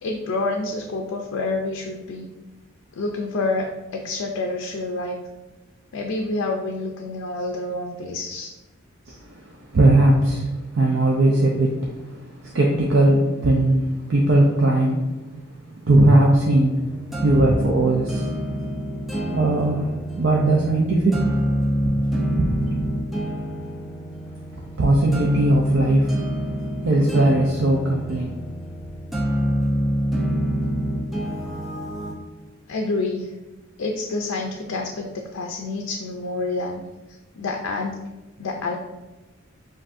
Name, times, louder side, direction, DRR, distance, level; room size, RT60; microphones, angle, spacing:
voice 1, 0.0-2.3 3.0-5.2 5.9-8.5 32.7-33.3 33.8-36.8 37.4-38.0 38.4-38.8, left 3 dB, 85° left, 2 dB, 0.4 m, -28 dB
voice 2, 9.1-15.0 15.8-16.8 17.2-18.3 19.3-19.9 20.2-21.2 22.4-22.5 24.8-26.1 26.8-28.3, right 1 dB, 65° right, -2 dB, 0.5 m, -19 dB
sound 1, 16.0-32.1, equal, ahead, 0.6 m, -27 dB
7.4 x 2.6 x 2.6 m, 1.1 s
head